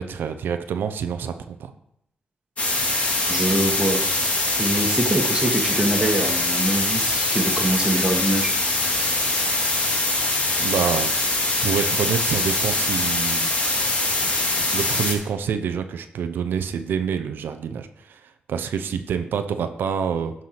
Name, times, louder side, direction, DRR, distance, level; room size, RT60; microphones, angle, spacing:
voice 1, 0.0-1.7 10.6-11.1 11.6-13.5 14.2-14.3 14.7-20.3, right 7 dB, 85° right, 8 dB, 0.8 m, -27 dB
sound 1, 2.6-15.1, left 2 dB, 40° left, 2.2 m, -23 dB
voice 2, 3.3-4.0 4.6-8.5, right 1 dB, 20° right, 0 dB, 1.6 m, -24 dB
12.0 x 4.7 x 5.9 m, 0.75 s
cardioid pair, 105°, 3 cm